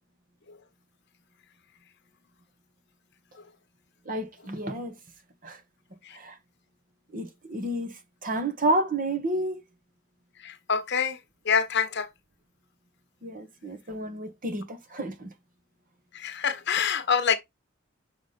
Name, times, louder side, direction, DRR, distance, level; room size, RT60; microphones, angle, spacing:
voice 1, 4.0-5.0 5.4-5.6 6.1-6.4 7.1-7.9 8.2-9.6 13.2-15.3, right 1 dB, 40° right, 1.3 m, -30 dB
voice 2, 10.4-11.2 11.4-12.1 16.1-17.3, left 7 dB, 55° left, 1.1 m, -26 dB
6.1 x 5.0 x 4.2 m
head